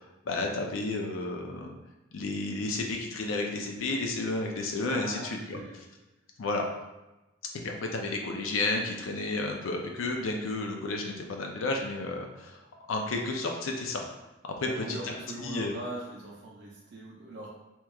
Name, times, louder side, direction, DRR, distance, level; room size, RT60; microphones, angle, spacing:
voice 1, 0.3-1.8 2.1-5.6 6.4-6.6 7.6-12.6 12.9-14.0 14.4-15.1 15.4-15.7, left 2 dB, 90° left, 2 dB, 0.4 m, -32 dB
voice 2, 4.9-5.8 14.6-17.5, right 2 dB, 60° right, -4 dB, 0.6 m, -41 dB
3.3 x 3.0 x 2.3 m, 1.0 s
head